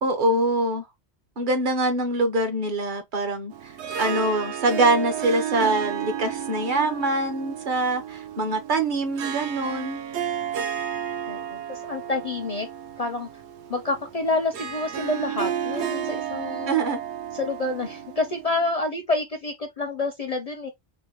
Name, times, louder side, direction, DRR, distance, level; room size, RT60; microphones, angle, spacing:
voice 1, 0.0-0.9 1.4-3.5 4.0-10.0 16.7-17.0, right 2 dB, 50° right, 0.9 m, -24 dB
Harp, 3.5-18.8, right 9 dB, 85° right, 0.9 m, -32 dB
voice 2, 11.3-12.7 13.0-13.3 13.7-16.8 17.3-20.7, left 3 dB, 50° left, 0.5 m, -28 dB
3.8 x 2.2 x 2.9 m
omnidirectional pair, 1.1 m